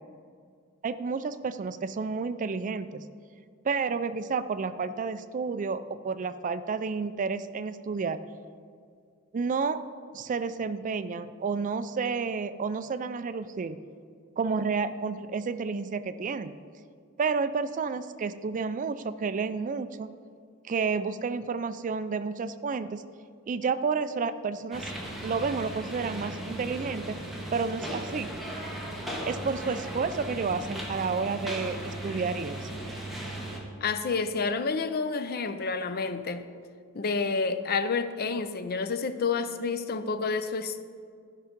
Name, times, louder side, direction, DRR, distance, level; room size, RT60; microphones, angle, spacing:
voice 1, 0.8-3.1 3.6-8.2 9.3-9.8 10.1-13.8 14.4-16.5 17.2-20.1 20.6-23.0 23.5-24.9 25.2-27.2 27.5-28.3 29.3-32.7, right 5 dB, 35° right, 0.4 m, -30 dB
sound 1, 24.7-33.6, right 1 dB, ahead, 1.6 m, -37 dB
voice 2, 33.8-36.5 36.9-40.8, left 4 dB, 45° left, 0.5 m, -29 dB
13.5 x 5.8 x 5.1 m
head